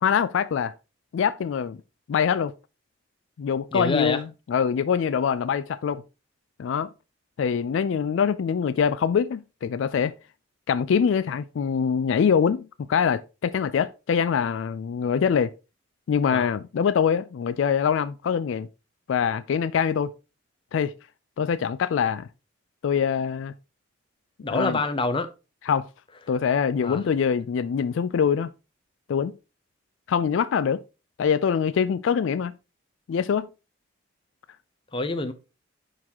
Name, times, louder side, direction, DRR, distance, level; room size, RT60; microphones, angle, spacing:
voice 1, 0.0-0.7 1.1-1.8 2.1-2.5 3.4-6.0 6.6-6.9 7.4-10.1 10.7-15.5 16.1-18.7 19.1-20.1 20.7-20.9 21.4-22.3 22.8-23.5 24.5-24.8 25.7-25.8 26.3-28.5 29.1-29.3 30.1-30.8 31.2-32.5 33.1-33.5, left 7 dB, 65° left, 0.3 m, -24 dB
voice 2, 3.7-4.2 16.3-16.5 24.4-25.3 26.8-27.0 34.9-35.3, left 2 dB, 25° left, 0.6 m, -26 dB
10.5 x 3.8 x 2.9 m
head